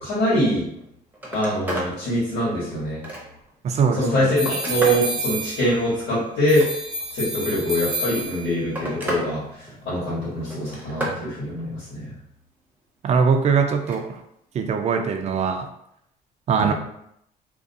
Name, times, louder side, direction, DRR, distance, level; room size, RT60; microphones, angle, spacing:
voice 1, 0.0-0.6 1.3-3.0 4.0-6.7 7.1-9.4 9.8-12.1 16.6-16.7, equal, 85° left, -9 dB, 1.2 m, -23 dB
Telephone, 0.7-0.8 1.1-1.9 2.4-3.5 4.1-5.1 6.3-7.1 8.1-9.3 9.6-10.1 10.5-11.2 13.7-14.0 15.4-15.6, right 1 dB, 10° right, 0.7 m, -32 dB
voice 2, 3.6-4.3 13.0-14.2 14.5-15.7 16.5-16.7, right 6 dB, 40° right, 6 dB, 0.4 m, -21 dB
sound 1, 4.4-6.0 6.5-8.7, right 1 dB, 85° right, 0.9 m, -30 dB
2.4 x 2.4 x 2.6 m, 0.74 s
cardioid pair, 110°, 17 cm